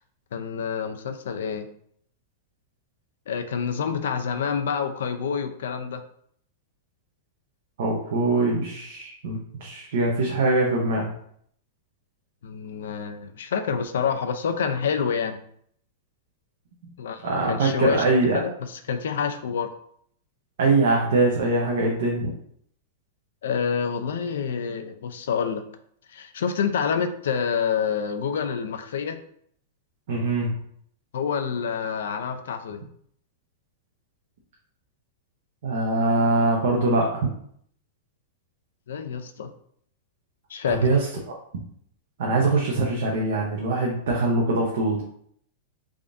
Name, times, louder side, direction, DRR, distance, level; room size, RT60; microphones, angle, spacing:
voice 1, 0.3-1.7 3.3-6.0 12.4-15.4 17.0-18.0 18.3-19.7 23.4-25.6 26.1-29.2 31.1-32.8 38.9-39.5 40.5-40.9, left 6 dB, 80° left, 8 dB, 0.5 m, -27 dB
voice 2, 7.8-11.1 17.2-18.4 20.6-22.3 30.1-30.5 35.6-37.3 40.7-41.0 42.2-45.0, right 2 dB, 60° right, -2 dB, 0.8 m, -23 dB
3.6 x 2.6 x 3.5 m, 0.66 s
supercardioid pair, 170°, 0 cm